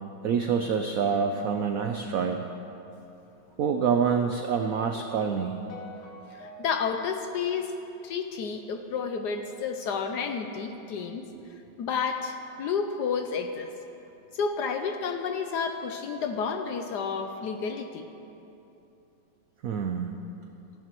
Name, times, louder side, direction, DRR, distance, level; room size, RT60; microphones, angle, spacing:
voice 1, 0.2-2.4 3.6-5.6 11.4-11.5 19.6-20.1, right 6 dB, 85° right, 5 dB, 0.7 m, -26 dB
sound 1, 4.3-8.6, left 1 dB, 85° left, 1.8 m, -49 dB
voice 2, 6.3-7.7 8.0-11.3 11.8-13.7 14.3-18.1, left 6 dB, 70° left, 6 dB, 1.0 m, -31 dB
17.5 x 14.5 x 3.0 m, 2.9 s
omnidirectional pair, 2.2 m